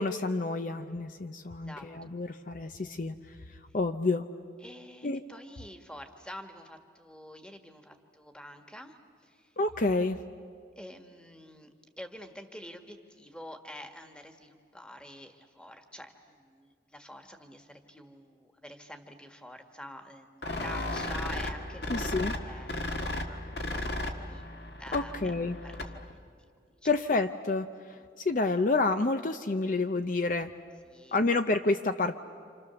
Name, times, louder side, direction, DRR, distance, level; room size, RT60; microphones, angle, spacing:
voice 1, 0.0-3.4 3.7-4.2 5.0-5.2 9.6-10.2 21.9-22.4 24.9-25.6 26.8-30.5 31.1-32.2, left 3 dB, 45° left, 8 dB, 0.6 m, -29 dB
voice 2, 1.5-1.9 4.6-9.5 10.7-22.1 22.4-22.7 23.2-24.4 24.8-25.3 25.6-26.2 28.0-28.1 30.8-31.2, equal, 5° left, 5 dB, 1.5 m, -47 dB
sound 1, 20.4-26.1, left 2 dB, 65° left, 1.8 m, -35 dB
29.0 x 27.5 x 7.0 m, 2.2 s
head